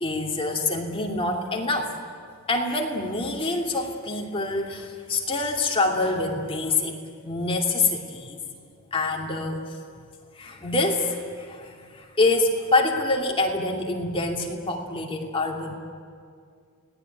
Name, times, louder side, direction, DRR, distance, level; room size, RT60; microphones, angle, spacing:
voice 1, 0.0-1.9 2.5-8.4 8.9-9.6 10.4-15.7, left 2 dB, 25° left, 1 dB, 2.6 m, -26 dB
29.5 x 19.0 x 9.4 m, 2.2 s
head